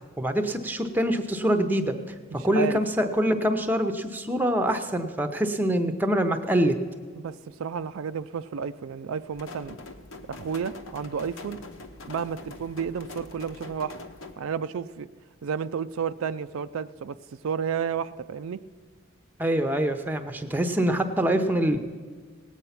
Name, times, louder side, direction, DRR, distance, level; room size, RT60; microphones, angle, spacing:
voice 1, 0.2-1.9 2.4-6.8 19.4-21.8, right 1 dB, 10° right, 7 dB, 0.7 m, -24 dB
voice 2, 2.3-2.8 7.2-9.8 10.3-11.6 12.1-14.0 14.4-15.1 15.4-17.2 17.4-18.6, right 7 dB, 80° right, 13 dB, 0.4 m, -31 dB
sound 1, 9.3-14.3, left 2 dB, 75° left, 1.0 m, -43 dB
18.5 x 8.2 x 5.8 m, 1.5 s
head